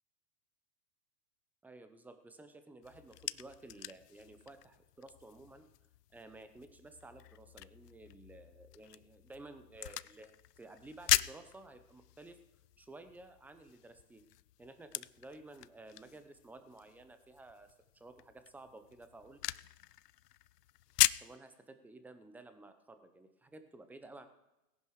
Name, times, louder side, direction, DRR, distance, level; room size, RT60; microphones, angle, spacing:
voice 1, 1.6-5.7 6.1-12.4 12.8-14.2 14.6-19.4 21.2-24.3, right 2 dB, 5° right, 9 dB, 0.7 m, -54 dB
sound 1, 2.8-21.4, left 14 dB, 75° left, 0.7 m, -40 dB
18.0 x 10.5 x 6.4 m, 0.96 s
hypercardioid pair, 145°, 48 cm